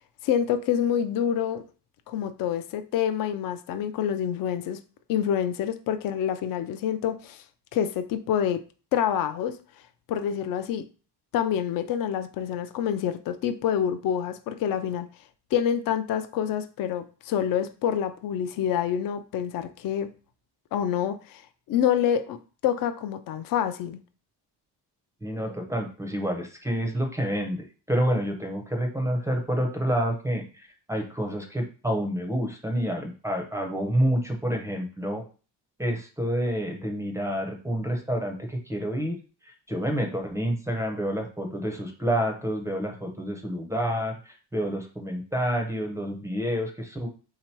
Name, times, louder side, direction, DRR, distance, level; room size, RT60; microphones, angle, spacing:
voice 1, 0.2-1.6 2.1-4.8 5.1-7.4 7.7-8.6 8.9-9.6 10.1-10.8 11.3-15.1 15.5-20.1 20.7-21.4 21.7-24.0, left 9 dB, 55° left, 0.5 m, -27 dB
voice 2, 25.2-35.2 35.8-47.1, equal, 5° right, 0.5 m, -28 dB
3.7 x 2.9 x 4.4 m
cardioid pair, 155°, 42 cm